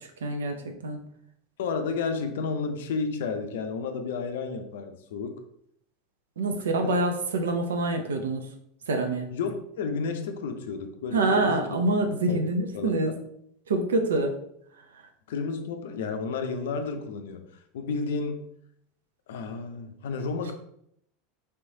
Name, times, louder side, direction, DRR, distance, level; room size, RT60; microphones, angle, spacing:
voice 1, 0.2-1.0 6.4-8.5 8.9-9.3 11.1-13.1 13.7-14.3, right 2 dB, 80° right, 5 dB, 0.5 m, -26 dB
voice 2, 1.6-5.4 6.8-7.0 9.3-11.6 12.3-12.4 12.7-13.2 15.3-17.5 17.7-18.4 19.3-20.5, left 4 dB, 70° left, 7 dB, 0.4 m, -31 dB
3.3 x 3.1 x 2.7 m, 0.72 s
hypercardioid pair, 85°, 0 cm